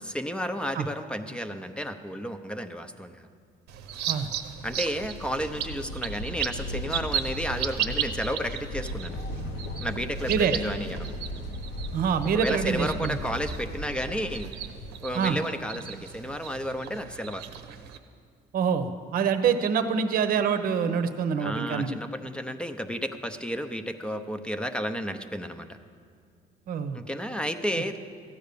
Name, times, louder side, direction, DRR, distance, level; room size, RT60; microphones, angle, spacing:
voice 1, 0.0-3.3 4.6-9.2 9.8-11.1 12.3-14.5 15.0-17.4 21.4-25.8 26.9-28.0, equal, 5° left, 8 dB, 0.7 m, -32 dB
sound 1, 3.7-18.0, right 9 dB, 90° right, 0.9 m, -36 dB
sound 2, 4.4-15.4, left 1 dB, 85° left, 1.1 m, -37 dB
voice 2, 11.9-13.2 15.1-15.4 18.5-21.9 26.7-27.0, right 6 dB, 60° right, 10 dB, 0.9 m, -25 dB
14.5 x 9.2 x 6.9 m, 2.2 s
cardioid pair, 110°, 17 cm